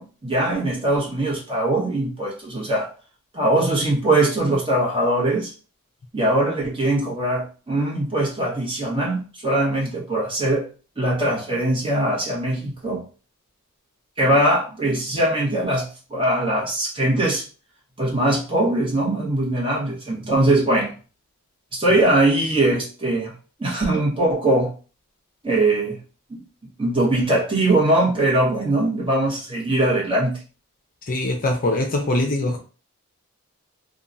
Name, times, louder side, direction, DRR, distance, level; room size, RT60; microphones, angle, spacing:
voice 1, 0.0-2.9 3.3-5.5 6.1-10.7 11.0-13.1 14.2-17.4 18.0-20.9 21.7-23.3 23.6-24.7 25.4-26.0 26.3-26.4 26.8-30.4, right 1 dB, 25° right, 1.0 m, -21 dB
voice 2, 31.1-32.6, left 2 dB, 40° left, 0.5 m, -22 dB
2.8 x 2.2 x 2.5 m
head